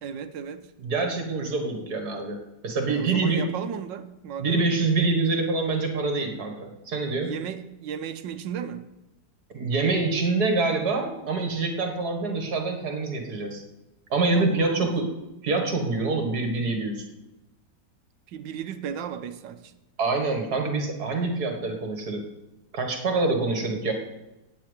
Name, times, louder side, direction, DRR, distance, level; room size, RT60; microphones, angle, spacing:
voice 1, 0.0-0.7 2.9-4.8 7.1-8.8 14.3-15.0 18.3-19.7, right 8 dB, 85° right, 10 dB, 1.5 m, -35 dB
voice 2, 0.8-2.4 2.6-3.4 4.4-7.3 9.5-13.6 14.1-15.1 15.4-17.0 20.0-22.2 22.7-23.9, right 3 dB, 60° right, 3 dB, 2.2 m, -25 dB
9.2 x 8.6 x 8.2 m, 1.0 s
omnidirectional pair, 1.9 m